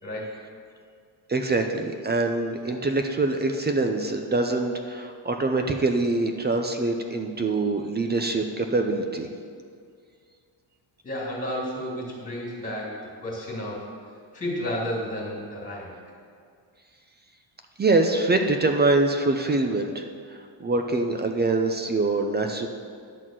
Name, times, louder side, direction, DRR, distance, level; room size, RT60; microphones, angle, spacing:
voice 1, 0.0-0.4 11.0-13.9 14.3-16.0, equal, 15° left, -3 dB, 2.6 m, -32 dB
voice 2, 1.3-9.3 17.8-20.0 20.3-22.7, right 2 dB, 25° right, 5 dB, 0.5 m, -24 dB
11.0 x 4.2 x 7.5 m, 2.2 s
cardioid pair, 145°, 46 cm